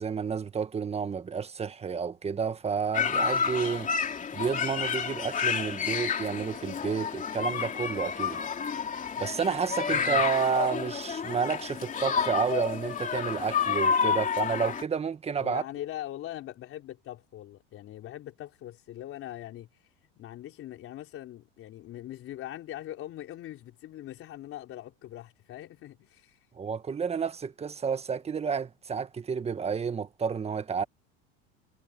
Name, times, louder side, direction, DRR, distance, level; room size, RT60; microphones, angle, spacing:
voice 1, 0.0-3.9 4.3-8.4 9.2-15.6 26.5-30.8, right 6 dB, 20° right, 1.6 m, -30 dB
sound 1, 2.9-14.8, left 6 dB, 25° left, 3.1 m, -30 dB
voice 2, 9.9-10.2 15.4-19.9 20.2-26.5, left 13 dB, 45° left, 4.1 m, -42 dB
supercardioid pair, 115°, 29 cm